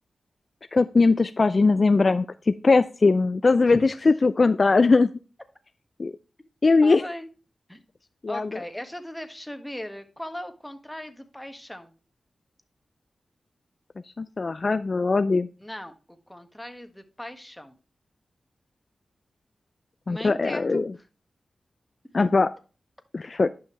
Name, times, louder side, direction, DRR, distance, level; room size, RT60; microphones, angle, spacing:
voice 1, 0.7-5.1 6.0-6.1 6.6-7.0 8.2-8.5 14.2-15.5 20.1-20.9 22.1-22.5 23.1-23.5, left 3 dB, 50° left, 12 dB, 0.4 m, -20 dB
voice 2, 6.8-7.3 7.7-7.8 8.3-11.9 15.6-15.9 16.3-17.8 20.1-20.8, left 1 dB, 10° left, 7 dB, 1.6 m, -38 dB
11.0 x 5.7 x 3.2 m, 0.34 s
cardioid pair, 55°, 0 cm